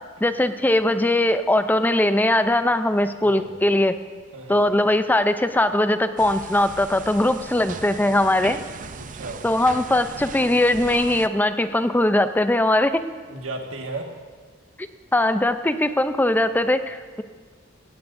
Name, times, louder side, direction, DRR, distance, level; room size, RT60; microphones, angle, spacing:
voice 1, 0.2-3.9 4.5-8.6 9.4-13.0 15.1-17.2, left 1 dB, 10° left, 10 dB, 0.5 m, -20 dB
voice 2, 3.2-3.5 4.3-4.7 8.9-9.5 13.3-14.1, right 2 dB, 90° right, 2 dB, 1.7 m, -35 dB
sound 1, 6.2-11.3, right 5 dB, 40° right, 0.5 m, -38 dB
17.0 x 16.5 x 2.6 m, 1.5 s
head